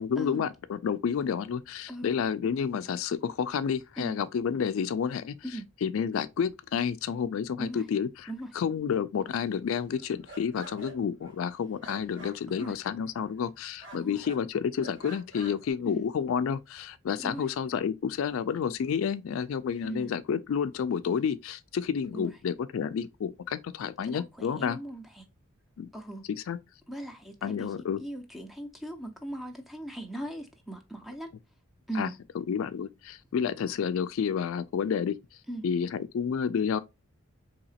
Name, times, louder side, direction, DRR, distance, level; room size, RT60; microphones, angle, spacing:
voice 1, 0.0-5.4 5.8-8.3 8.5-24.8 25.8-25.9 26.3-26.6 27.4-28.0 32.0-32.1 32.4-35.2 35.6-36.8, left 7 dB, 70° left, 0.3 m, -30 dB
sound 1, 9.9-13.5 13.8-14.4 14.8-15.7, right 2 dB, 55° right, 1.7 m, -48 dB
voice 2, 19.8-20.2 22.1-22.3 24.0-25.2 25.9-26.2 26.9-31.3 31.9-32.1 35.5-35.7, right 1 dB, ahead, 0.5 m, -39 dB
4.0 x 2.8 x 2.7 m
head